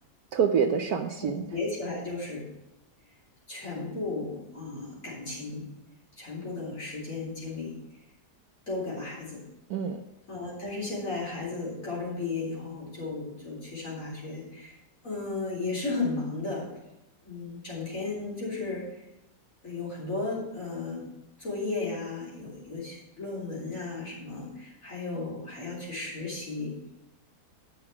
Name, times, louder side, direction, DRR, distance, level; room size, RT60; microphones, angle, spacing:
voice 1, 0.3-1.4 9.7-10.0, right 7 dB, 65° right, 6 dB, 1.1 m, -26 dB
voice 2, 1.2-2.5 3.5-5.7 6.2-7.7 8.7-9.4 10.3-14.8 15.0-16.7 17.2-19.0 19.6-21.1 21.4-26.7, left 3 dB, 45° left, -5 dB, 4.3 m, -34 dB
9.8 x 6.3 x 5.7 m, 0.92 s
omnidirectional pair, 1.9 m